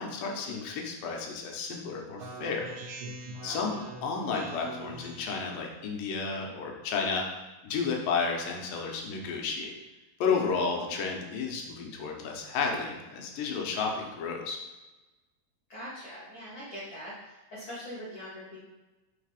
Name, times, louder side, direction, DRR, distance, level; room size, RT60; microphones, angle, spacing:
voice 1, 0.0-2.7 3.4-7.2 7.6-9.7 10.2-14.6, left 5 dB, 85° left, 1 dB, 2.4 m, -32 dB
Speech synthesizer, 2.2-5.5, right 2 dB, 80° right, 2.1 m, -43 dB
voice 2, 15.7-18.6, equal, 45° left, -9 dB, 2.0 m, -42 dB
4.8 x 4.1 x 5.0 m, 1.1 s
omnidirectional pair, 4.0 m